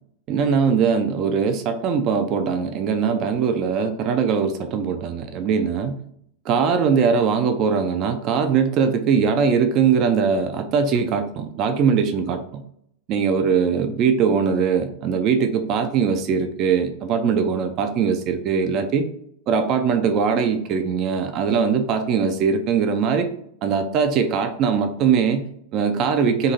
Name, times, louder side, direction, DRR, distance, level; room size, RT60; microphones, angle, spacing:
voice 1, 0.3-6.0 6.5-12.6 13.1-19.1 19.5-23.3 23.6-26.5, right 6 dB, 35° right, 7 dB, 0.3 m, -21 dB
2.7 x 2.6 x 3.8 m, 0.71 s
figure-of-eight pair, 90°, 0 cm